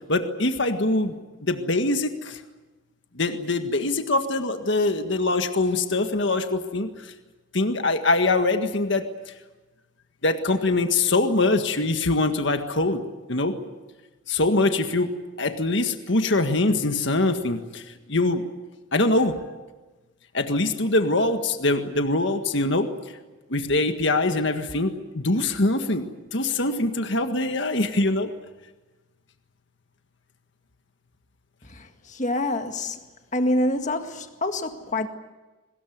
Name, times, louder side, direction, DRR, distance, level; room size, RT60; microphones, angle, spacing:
voice 1, 0.1-2.4 3.1-7.1 7.5-9.0 10.2-13.0 13.3-13.6 14.3-17.8 18.1-18.4 18.9-19.4 20.3-22.9 23.5-28.3, left 2 dB, 55° left, 7 dB, 1.8 m, -23 dB
voice 2, 31.8-33.0 33.3-35.1, left 1 dB, 35° left, 6 dB, 1.9 m, -26 dB
23.0 x 20.5 x 9.5 m, 1.2 s
head